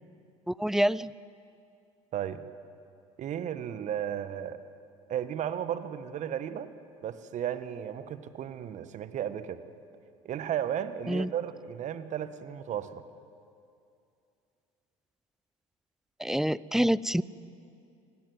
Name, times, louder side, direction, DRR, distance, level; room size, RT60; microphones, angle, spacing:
voice 1, 0.5-1.1 11.1-11.3 16.2-17.2, equal, ahead, 20 dB, 0.5 m, -26 dB
voice 2, 2.1-2.4 3.2-4.6 5.1-6.7 7.0-9.6 10.2-13.0, right 10 dB, 45° right, 12 dB, 1.5 m, -34 dB
27.5 x 18.0 x 9.3 m, 2.6 s
hypercardioid pair, 70°, 17 cm